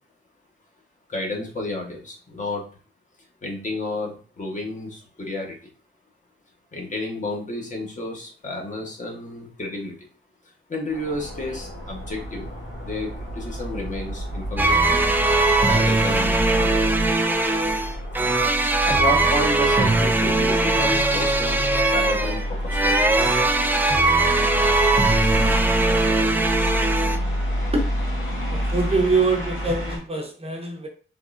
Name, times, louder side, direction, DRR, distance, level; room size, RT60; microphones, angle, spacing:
voice 1, 1.1-2.6 3.4-5.6 6.7-10.1 10.4-12.5 12.8-15.1 15.6-16.7 17.1-18.0 18.8-23.0, left 1 dB, 35° left, 0 dB, 0.9 m, -31 dB
sound 1, 10.9-30.0, equal, 85° left, 1.4 m, -29 dB
sound 2, 14.6-27.2, right 2 dB, 10° right, 0.3 m, -20 dB
voice 2, 28.5-30.9, right 3 dB, 30° right, 2 dB, 0.7 m, -24 dB
3.6 x 3.0 x 2.4 m, 0.39 s
wide cardioid pair, 125°, 21 cm